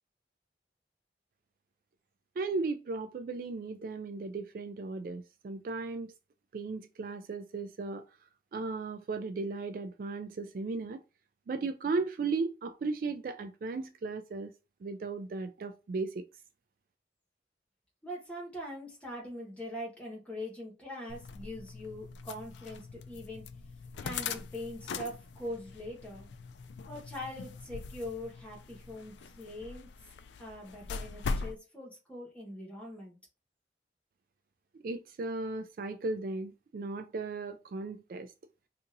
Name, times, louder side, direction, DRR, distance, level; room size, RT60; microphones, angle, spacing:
voice 1, 2.4-6.1 6.5-8.0 8.5-11.0 11.5-14.5 14.8-16.2 34.8-38.3, right 3 dB, 50° right, 0.3 m, -36 dB
voice 2, 18.0-23.4 24.0-26.3 26.9-29.9 30.4-33.2, left 1 dB, 5° left, 1.2 m, -42 dB
sound 1, 21.1-31.6, left 4 dB, 80° left, 0.4 m, -41 dB
2.8 x 2.6 x 3.8 m
head